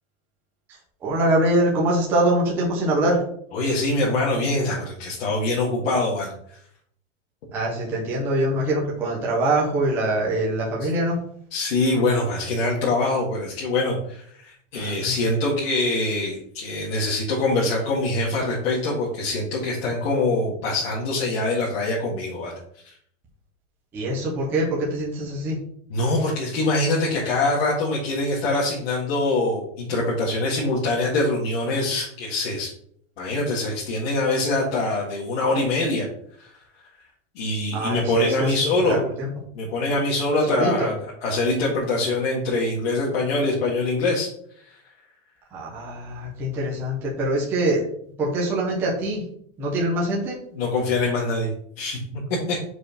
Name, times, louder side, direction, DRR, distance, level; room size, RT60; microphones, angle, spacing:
voice 1, 1.0-3.2 7.5-11.2 14.7-15.1 23.9-25.6 37.7-39.3 40.5-40.9 45.5-47.9 48.2-49.2 49.6-50.4, right 1 dB, 5° right, -4 dB, 0.5 m, -24 dB
voice 2, 3.5-6.3 10.8-10.9 11.5-22.5 22.8-22.9 25.9-32.7 33.2-36.1 36.4-36.5 37.4-39.0 39.6-44.3 50.5-51.5 51.8-52.6, left 2 dB, 55° left, -4 dB, 2.0 m, -24 dB
4.9 x 4.8 x 5.9 m, 0.65 s
supercardioid pair, 175°, 37 cm